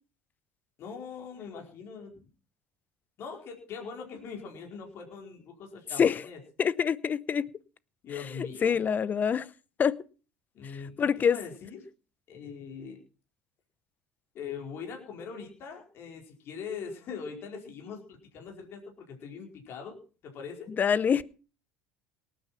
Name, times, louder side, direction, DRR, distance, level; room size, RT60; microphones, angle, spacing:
voice 1, 0.8-2.2 3.2-6.4 8.0-8.8 10.5-11.8 12.3-13.0 14.3-18.8 19.1-20.0 20.2-20.7, left 6 dB, 55° left, 4.7 m, -42 dB
voice 2, 6.6-7.5 8.4-9.5 9.8-10.0 11.0-11.4 20.8-21.2, left 7 dB, 35° left, 0.8 m, -25 dB
18.5 x 9.4 x 5.7 m
supercardioid pair, 90°, 5 cm